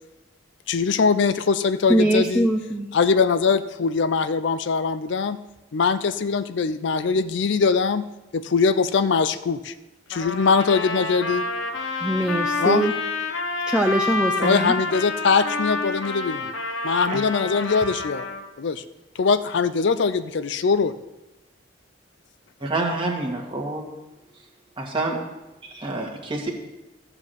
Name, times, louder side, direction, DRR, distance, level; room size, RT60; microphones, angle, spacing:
voice 1, 0.7-2.5 2.9-5.4 5.7-8.0 8.3-9.7 10.1-11.5 12.6-12.8 14.4-16.5 16.8-18.3 18.6-18.8 19.2-20.9, left 5 dB, 65° left, 13 dB, 0.5 m, -22 dB
voice 2, 1.9-2.9 12.0-12.9 13.7-14.7, right 1 dB, 5° right, 2 dB, 0.6 m, -22 dB
Trumpet, 10.1-18.4, left 3 dB, 85° left, 1.5 m, -28 dB
voice 3, 22.6-23.8 24.8-25.2 25.6-26.5, right 2 dB, 25° right, -1 dB, 1.8 m, -27 dB
14.0 x 4.9 x 7.8 m, 1.0 s
head